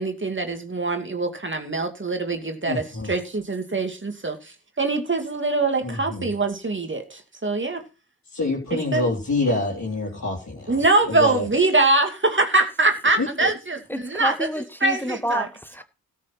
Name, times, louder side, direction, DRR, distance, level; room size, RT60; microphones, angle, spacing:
voice 1, 0.0-4.4 4.8-7.8 8.7-9.0 10.7-14.3 14.8-15.5, right 2 dB, 30° right, 2.5 m, -23 dB
voice 2, 2.7-3.1 5.8-6.3 8.3-11.5 13.2-13.5, left 2 dB, 45° left, 3.7 m, -27 dB
voice 3, 13.9-15.8, equal, 5° left, 1.4 m, -29 dB
13.5 x 6.7 x 6.0 m
supercardioid pair, 40°, 37 cm